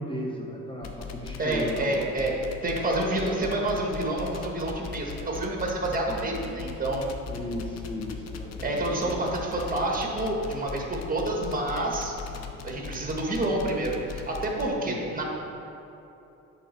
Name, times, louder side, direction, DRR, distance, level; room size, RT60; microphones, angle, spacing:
voice 1, 0.0-2.0 6.2-6.5 7.3-9.2 12.3-12.6 14.8-15.2, left 1 dB, 15° left, -2 dB, 1.0 m, -36 dB
sound 1, 0.8-14.7, left 5 dB, 60° left, 0.8 m, -39 dB
voice 2, 1.4-7.0 8.6-12.1 12.6-15.2, right 1 dB, 30° right, -1 dB, 1.5 m, -28 dB
9.1 x 4.2 x 5.8 m, 2.9 s
cardioid pair, 90°, 30 cm